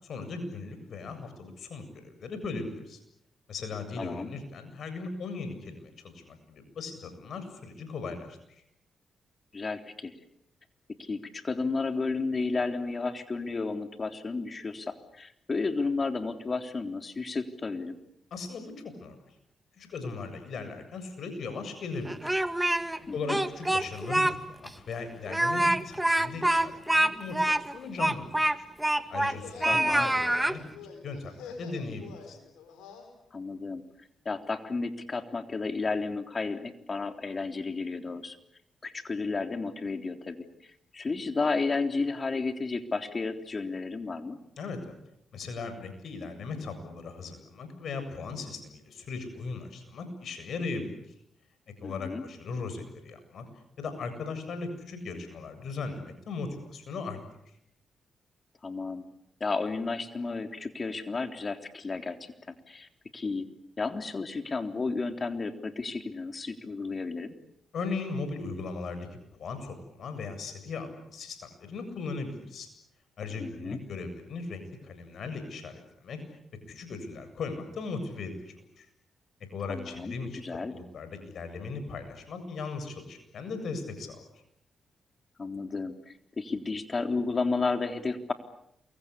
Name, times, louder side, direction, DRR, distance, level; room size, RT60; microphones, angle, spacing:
voice 1, 0.0-3.0 3.5-8.4 18.3-19.2 19.8-22.3 23.1-28.2 28.6-28.7 29.1-32.4 44.6-44.9 45.3-50.9 51.8-53.4 53.8-57.2 67.7-69.1 69.4-72.7 73.2-76.2 76.7-78.9 79.5-84.2, left 4 dB, 65° left, 9 dB, 7.6 m, -38 dB
voice 2, 4.0-4.3 9.5-10.1 10.9-18.0 23.1-23.4 29.6-30.1 33.3-33.8 34.3-38.4 38.8-44.4 51.8-52.3 58.6-59.0 59.4-63.5 63.8-67.4 73.4-73.8 79.7-80.7 85.4-88.3, left 4 dB, 40° left, 7 dB, 3.5 m, -32 dB
Speech, 22.0-23.0 23.3-24.3 24.7-24.8 25.3-29.4 29.6-30.6, right 1 dB, 10° right, 2.1 m, -25 dB
sound 1, 29.2-33.1, left 5 dB, 85° left, 7.1 m, -46 dB
28.5 x 23.5 x 8.5 m, 0.77 s
supercardioid pair, 50°, 0 cm